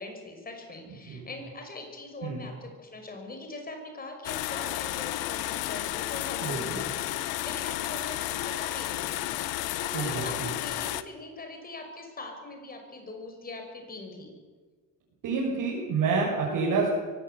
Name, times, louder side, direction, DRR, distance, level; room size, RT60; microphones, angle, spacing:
voice 1, 0.0-14.4, left 2 dB, 25° left, 4 dB, 5.8 m, -42 dB
sound 1, 4.2-11.0, left 15 dB, 90° left, 1.1 m, -32 dB
voice 2, 9.9-10.5 15.2-16.9, right 4 dB, 65° right, -5 dB, 6.6 m, -28 dB
23.5 x 17.0 x 8.4 m, 1.4 s
cardioid pair, 135°, 35 cm